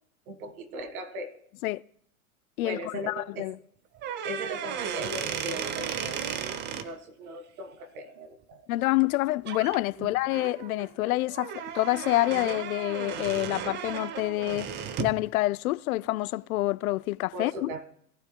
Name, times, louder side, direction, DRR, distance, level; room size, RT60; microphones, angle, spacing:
voice 1, 0.3-1.3 2.6-3.5 4.2-6.2 6.7-8.6 10.0-10.1 17.3-17.9, right 1 dB, 70° right, 1.8 m, -38 dB
voice 2, 2.6-3.6 8.7-14.7 15.0-17.7, left 18 dB, 70° left, 0.5 m, -27 dB
sound 1, 3.9-6.9 9.0-9.2 9.5-9.8 10.3-15.2, right 8 dB, 25° right, 0.6 m, -35 dB
18.0 x 12.0 x 2.2 m
hypercardioid pair, 120°, 45 cm